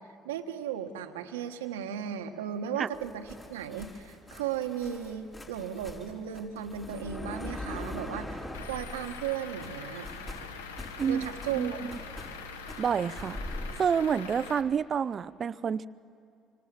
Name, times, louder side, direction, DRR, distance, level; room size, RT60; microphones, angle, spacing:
voice 1, 0.2-10.1 11.1-11.9, right 9 dB, 85° right, 7 dB, 1.3 m, -36 dB
sound 1, 2.9-9.3 9.6-13.7, left 2 dB, 30° left, 5.1 m, -42 dB
Truck / Idling, 8.5-14.6, left 5 dB, 85° left, 1.2 m, -43 dB
voice 2, 11.0-11.3 11.6-12.0 12.8-13.4 13.8-15.9, right 7 dB, 45° right, 17 dB, 0.6 m, -28 dB
25.5 x 25.5 x 7.6 m, 2.5 s
hypercardioid pair, 60°, 0 cm